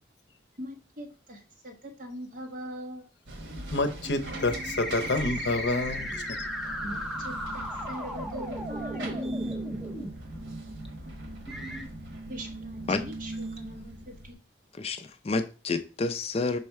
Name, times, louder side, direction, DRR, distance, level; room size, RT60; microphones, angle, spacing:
voice 1, 0.6-3.1 6.8-9.5 12.3-14.3, equal, 45° right, 1.5 m, -40 dB
sound 1, 3.3-14.3, right 2 dB, 90° right, 1.3 m, -40 dB
voice 2, 3.7-6.5, left 2 dB, 65° left, 0.7 m, -28 dB
sound 2, 4.0-10.1 10.8-10.9 11.5-11.8, equal, ahead, 0.7 m, -36 dB
voice 3, 14.7-16.6, left 3 dB, 35° left, 0.4 m, -29 dB
5.4 x 4.2 x 4.6 m
head